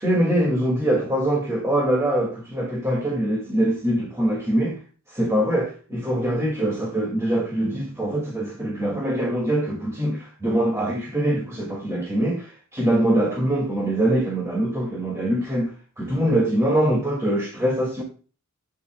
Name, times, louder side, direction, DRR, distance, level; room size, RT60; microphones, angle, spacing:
voice 1, 0.0-4.8 5.1-18.0, right 1 dB, 15° right, 2.1 m, -23 dB
12.5 x 8.7 x 2.3 m
head